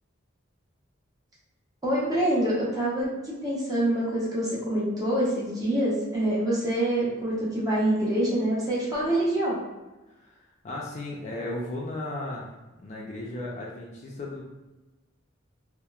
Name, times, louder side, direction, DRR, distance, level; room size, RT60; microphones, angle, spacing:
voice 1, 1.8-9.6, right 1 dB, 20° right, -7 dB, 0.8 m, -26 dB
voice 2, 10.2-12.5 12.8-14.4, left 2 dB, 35° left, -3 dB, 0.3 m, -35 dB
2.9 x 2.0 x 2.3 m, 1.1 s
head